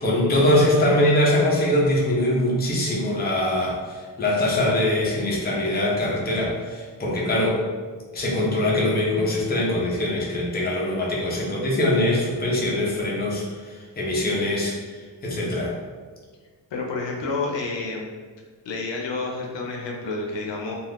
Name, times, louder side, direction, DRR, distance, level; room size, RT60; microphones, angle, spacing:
voice 1, 0.0-7.6 8.1-15.0 15.2-15.7, left 1 dB, 25° left, -4 dB, 0.5 m, -22 dB
voice 2, 16.7-18.1 18.6-20.7, left 3 dB, 80° left, 0 dB, 0.6 m, -29 dB
2.4 x 2.4 x 3.3 m, 1.5 s
wide cardioid pair, 155°, 43 cm